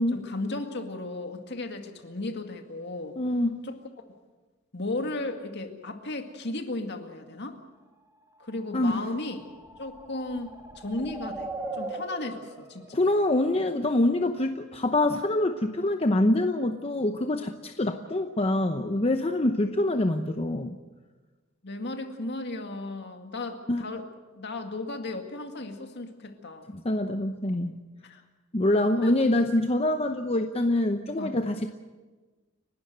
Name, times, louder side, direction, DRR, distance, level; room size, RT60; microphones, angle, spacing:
voice 1, 0.1-3.2 3.6-3.8 4.7-7.6 8.4-9.4 9.8-13.0 21.6-24.1 24.3-26.7 28.0-28.2 29.0-29.2 31.2-31.4, left 2 dB, 55° left, 5 dB, 2.1 m, -35 dB
voice 2, 3.2-3.5 8.7-9.0 12.9-20.8 23.7-23.8 26.7-27.8 28.5-31.7, left 1 dB, 30° left, 6 dB, 0.8 m, -25 dB
sound 1, 8.4-14.2, right 2 dB, 15° right, 2.0 m, -41 dB
30.0 x 12.5 x 7.9 m, 1.3 s
head